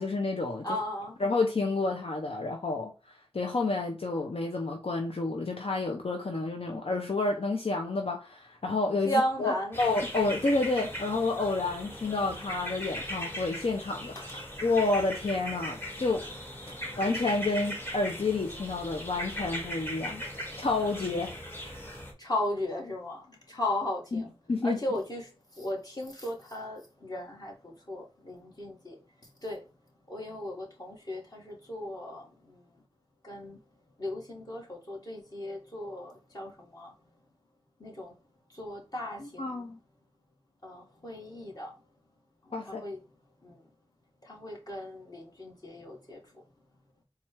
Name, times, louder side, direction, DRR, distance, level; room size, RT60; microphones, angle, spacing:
voice 1, 0.0-0.7 1.2-14.3 14.6-16.2 17.0-20.2 20.6-21.8 24.1-24.2 24.5-24.8 39.2-39.8 42.5-42.8, left 3 dB, 70° left, 0.6 m, -30 dB
voice 2, 0.6-1.2 9.0-9.8 14.2-14.4 22.2-24.3 24.6-29.0 29.4-29.7 30.1-32.8 33.2-33.6 34.0-37.0 37.8-38.1 38.5-39.7 40.6-41.8 42.4-43.0 43.4-43.6 44.2-46.4, left 1 dB, 40° left, 1.8 m, -36 dB
sound 1, 9.7-22.1, equal, 20° left, 1.3 m, -39 dB
4.2 x 2.4 x 4.5 m
wide cardioid pair, 40°, 10 cm